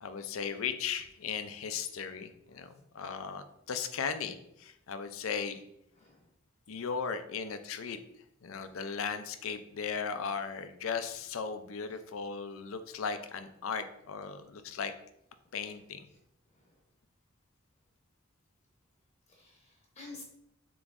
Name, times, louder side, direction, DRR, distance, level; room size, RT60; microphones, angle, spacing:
voice 1, 0.0-5.6 6.7-8.0 8.4-14.9 15.5-16.1, left 6 dB, 80° left, 10 dB, 0.5 m, -37 dB
voice 2, 6.0-6.3 16.5-16.8 19.3-20.2, left 3 dB, 30° left, -1 dB, 0.8 m, -51 dB
6.9 x 3.0 x 2.5 m, 0.77 s
head